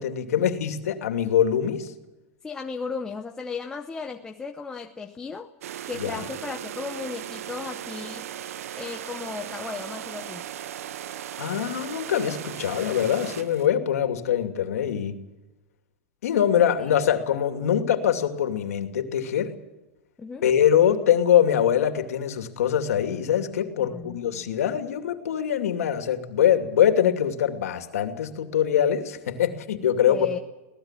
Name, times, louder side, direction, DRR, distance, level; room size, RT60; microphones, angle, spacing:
voice 1, 0.0-1.9 6.0-6.2 11.4-15.2 16.2-19.6 20.4-30.3, left 9 dB, 90° left, 7 dB, 2.6 m, -23 dB
voice 2, 2.4-5.5 5.9-8.3 8.8-10.5 16.8-17.0 20.2-20.4 23.8-24.2 30.1-30.4, left 5 dB, 10° left, 4 dB, 0.7 m, -35 dB
sound 1, 5.6-13.7, right 11 dB, 75° right, 0.8 m, -37 dB
23.5 x 18.0 x 7.5 m, 1.0 s
supercardioid pair, 165°, 8 cm